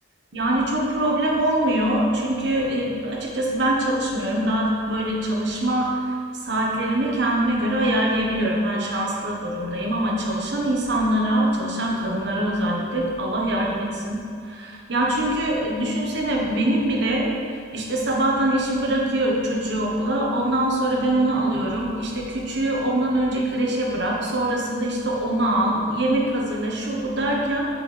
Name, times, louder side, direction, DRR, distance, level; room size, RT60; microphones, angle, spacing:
voice 1, 0.3-6.2 6.4-27.7, right 1 dB, 65° right, -2 dB, 1.3 m, -23 dB
7.5 x 6.3 x 3.4 m, 2.3 s
head